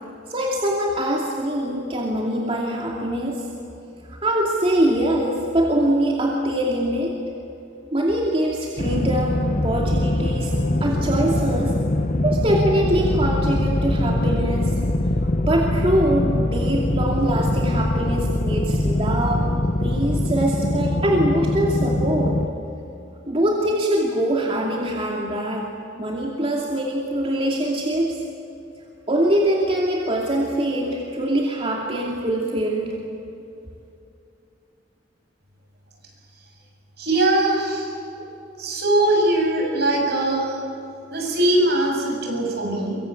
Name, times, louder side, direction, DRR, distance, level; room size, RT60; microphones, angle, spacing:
voice 1, 0.3-3.5 4.0-7.1 7.9-10.5 10.8-11.7 12.2-14.7 15.4-19.5 19.8-22.4 23.3-25.7 26.0-28.2 29.1-33.0, right 1 dB, 30° right, -2 dB, 2.7 m, -23 dB
sound 1, 8.8-22.5, left 1 dB, 40° left, 1.2 m, -22 dB
voice 2, 37.0-37.9 38.6-40.6 41.1-43.0, right 1 dB, 60° right, 0 dB, 7.5 m, -21 dB
24.0 x 23.5 x 8.7 m, 2.7 s
head